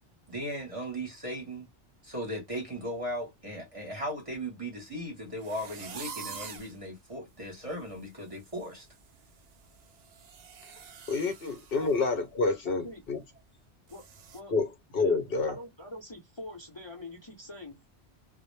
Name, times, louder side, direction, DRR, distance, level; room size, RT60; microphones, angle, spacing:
voice 1, 0.3-1.7 2.0-8.9, equal, 35° right, 0.8 m, -37 dB
sound 1, 5.4-6.8 7.3-7.4 7.8-8.1 8.3-12.0 12.3-12.5 13.0-13.1 13.9-14.4, right 6 dB, 65° right, 0.4 m, -46 dB
voice 2, 11.1-13.2 14.5-15.5, left 4 dB, 60° left, 0.9 m, -28 dB
voice 3, 12.6-13.0 13.9-14.0 14.3-14.5 15.0-15.2 15.5-17.9, left 2 dB, 30° left, 0.6 m, -44 dB
2.1 x 2.1 x 3.1 m
omnidirectional pair, 1.2 m